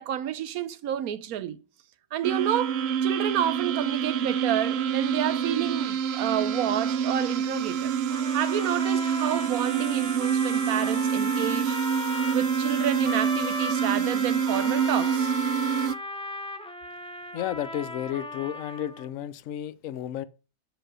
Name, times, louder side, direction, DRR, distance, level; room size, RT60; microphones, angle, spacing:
voice 1, 0.0-1.6 2.1-7.9 8.3-11.8 12.3-15.3, right 11 dB, 85° right, 1.2 m, -30 dB
sound 1, 2.2-15.9, right 7 dB, 60° right, 0.7 m, -27 dB
sound 2, 8.1-19.1, left 1 dB, 5° left, 0.4 m, -36 dB
voice 2, 17.3-20.3, left 11 dB, 70° left, 1.0 m, -32 dB
6.8 x 5.1 x 6.1 m
omnidirectional pair, 1.5 m